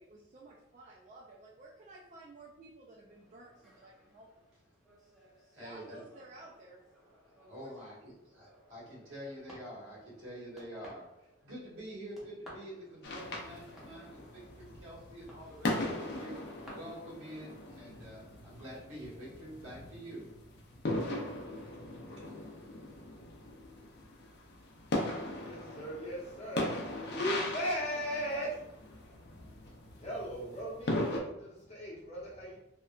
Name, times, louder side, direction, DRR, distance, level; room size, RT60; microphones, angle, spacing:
voice 1, 0.0-4.5 5.6-6.9 7.4-8.1, right 2 dB, 35° right, -4 dB, 0.3 m, -54 dB
sound 1, 3.1-16.7, equal, ahead, 0.6 m, -59 dB
voice 2, 5.5-6.0 7.5-11.1 11.4-16.4 16.7-20.3 22.2-22.4, equal, 80° right, -6 dB, 1.4 m, -47 dB
sound 2, 13.0-31.2, left 1 dB, 55° left, 0.5 m, -39 dB
voice 3, 25.0-32.6, equal, 35° left, -5 dB, 0.8 m, -39 dB
2.9 x 2.2 x 2.4 m, 0.84 s
head